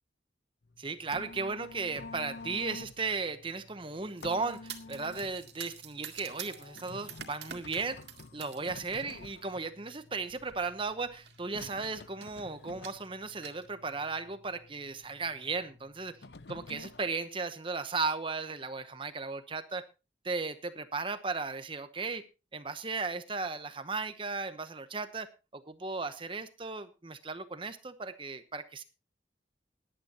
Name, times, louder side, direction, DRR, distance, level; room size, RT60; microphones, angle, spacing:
sound 1, 0.6-17.1, left 3 dB, 70° left, 0.8 m, -50 dB
voice 1, 0.8-8.0 8.3-16.2 16.5-19.8 20.2-22.2 22.5-28.8, right 4 dB, 30° right, 11 dB, 0.9 m, -36 dB
sound 2, 4.2-8.7 9.1-9.5 10.4-10.5 10.8-10.9 11.2-11.7 12.2-12.4 12.8-13.7, right 9 dB, 70° right, 2.0 m, -47 dB
18.5 x 11.5 x 2.9 m, 0.29 s
head